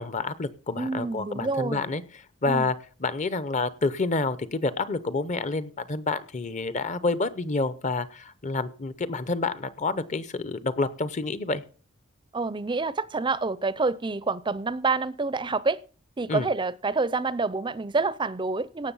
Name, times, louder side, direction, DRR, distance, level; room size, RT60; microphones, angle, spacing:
voice 1, 0.0-2.0 2.4-2.7 3.0-11.6 16.3-16.5, left 3 dB, 35° left, 0.8 m, -28 dB
voice 2, 0.8-1.8 2.5-2.7 12.3-15.8 16.2-18.9, right 3 dB, 20° right, 0.5 m, -27 dB
17.5 x 6.7 x 5.6 m
head